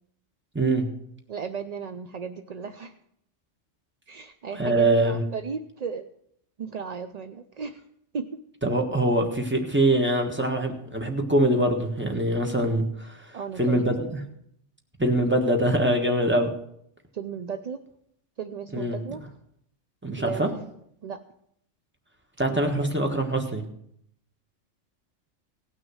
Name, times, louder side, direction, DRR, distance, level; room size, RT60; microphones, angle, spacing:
voice 1, 1.3-2.9 4.1-6.1 6.6-7.8 8.1-8.4 13.3-14.2 17.1-17.8 18.4-19.2 20.2-20.7 21.0-21.2 22.5-22.9, right 6 dB, 55° right, 9 dB, 0.4 m, -35 dB
voice 2, 4.6-5.2 8.6-13.3 13.6-14.2 15.0-16.5 18.7-19.0 20.0-20.5 22.4-23.6, right 1 dB, 10° right, 3 dB, 1.4 m, -23 dB
17.5 x 6.1 x 6.3 m, 0.72 s
omnidirectional pair, 1.3 m